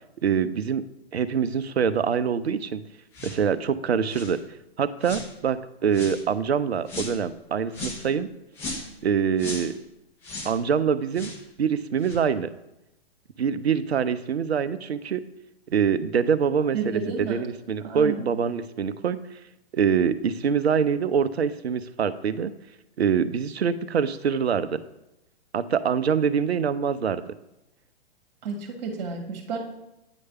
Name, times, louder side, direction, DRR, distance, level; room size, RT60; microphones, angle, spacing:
voice 1, 0.2-0.8 1.1-2.8 3.2-4.4 4.8-8.3 9.0-9.7 10.4-11.3 11.6-12.5 13.4-15.2 15.7-19.2 19.7-22.5 23.0-24.8 25.5-27.2, right 7 dB, 75° right, 14 dB, 0.5 m, -24 dB
sound 1, 3.1-3.4 4.1-4.4 5.0-5.3 5.9-6.2 6.9-7.2 7.7-8.1 8.5-8.9 9.4-9.7 10.2-10.6 11.1-11.4 12.0-12.2, left 2 dB, 10° left, 0.4 m, -36 dB
voice 2, 16.7-17.5 17.8-18.2 28.4-29.6, right 5 dB, 45° right, 3 dB, 1.6 m, -31 dB
9.0 x 3.2 x 5.3 m, 0.90 s
figure-of-eight pair, 115°, 32 cm